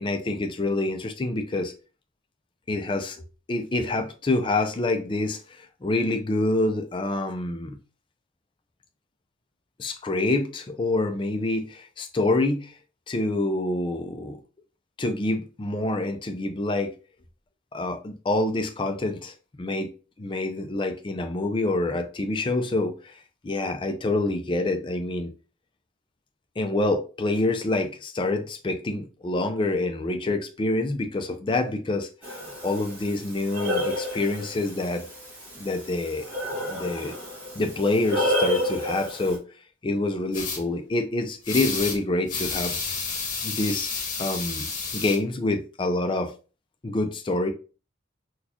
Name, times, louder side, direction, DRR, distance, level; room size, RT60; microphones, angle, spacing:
voice 1, 0.0-1.7 2.7-3.2 3.5-5.4 5.8-7.8 9.8-12.7 13.1-14.4 15.0-16.9 17.7-19.3 19.6-19.9 20.2-23.1 23.4-25.3 26.6-32.1 32.6-35.0 35.6-36.3 36.7-37.1 37.6-39.4 39.8-42.7 43.4-43.9 44.2-44.7 44.9-46.3 46.8-47.5, left 2 dB, 25° left, 0.4 m, -26 dB
Breathing, 32.2-39.4, left 1 dB, 10° right, 1.8 m, -31 dB
sound 1, 40.3-40.6 41.4-42.0 42.3-45.2, left 4 dB, 40° left, 0.9 m, -30 dB
4.1 x 2.3 x 2.8 m
head